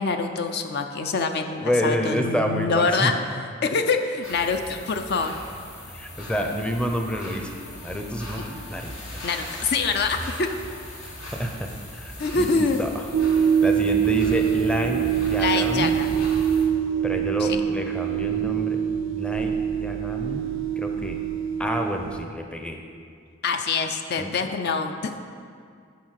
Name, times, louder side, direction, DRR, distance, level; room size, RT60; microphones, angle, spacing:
voice 1, 0.0-3.1 3.6-5.3 9.2-10.5 12.2-12.8 15.4-16.3 17.4-17.6 23.4-25.3, left 4 dB, 55° left, 6 dB, 0.5 m, -25 dB
voice 2, 1.6-3.1 5.9-7.5 7.8-8.9 11.0-12.5 12.8-12.9 13.6-16.0 17.0-18.8 19.1-20.5 20.8-21.2 21.6-22.8 24.2-24.3, equal, 5° left, 3 dB, 0.6 m, -28 dB
sound 1, 4.2-16.6, left 1 dB, 80° left, 2.2 m, -38 dB
sound 2, 13.1-22.2, right 9 dB, 65° right, 0.4 m, -24 dB
9.3 x 4.9 x 6.4 m, 2.3 s
head